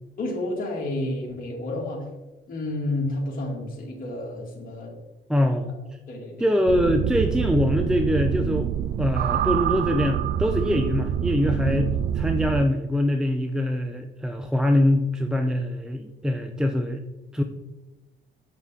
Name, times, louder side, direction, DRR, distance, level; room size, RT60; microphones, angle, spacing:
voice 1, 0.2-2.0 2.5-4.9 5.7-5.8 6.1-6.5 11.6-11.9, left 2 dB, 45° left, -4 dB, 2.6 m, -30 dB
voice 2, 5.3-5.7 6.4-8.7 9.0-11.9 12.2-17.0 17.3-17.4, left 1 dB, 5° right, 5 dB, 0.6 m, -23 dB
sound 1, 6.7-12.7, right 10 dB, 55° right, 0.4 m, -26 dB
8.0 x 7.3 x 3.7 m, 1.1 s
cardioid pair, 90°, 20 cm